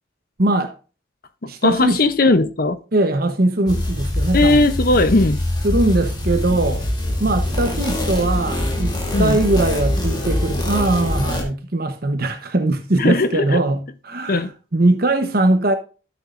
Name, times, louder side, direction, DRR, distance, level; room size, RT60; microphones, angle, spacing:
voice 1, 0.4-0.7 1.5-2.0 2.9-4.7 5.6-6.9 7.2-14.5 14.7-15.7, right 2 dB, 50° right, 0.9 m, -20 dB
voice 2, 1.4-2.8 4.3-5.4 9.1-9.4 13.0-13.6 14.3-14.5, left 2 dB, 50° left, 0.7 m, -17 dB
sound 1, 3.7-11.4, left 1 dB, 20° left, 2.0 m, -23 dB
13.5 x 6.4 x 2.5 m
head